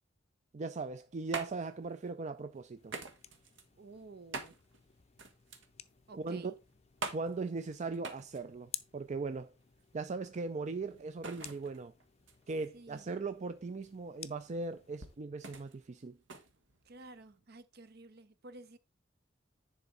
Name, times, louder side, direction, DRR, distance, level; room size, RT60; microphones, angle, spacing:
voice 1, 0.5-3.0 6.1-6.5 7.1-9.5 9.9-11.9 12.5-16.2, right 3 dB, 40° right, 0.4 m, -39 dB
sound 1, 0.8-17.4, right 3 dB, 75° right, 1.4 m, -47 dB
sound 2, 2.8-15.2, left 10 dB, 35° left, 0.5 m, -54 dB
voice 2, 3.8-4.6 6.1-6.6 12.7-13.1 16.8-18.8, right 3 dB, 55° right, 0.8 m, -52 dB
10.0 x 4.8 x 3.8 m
head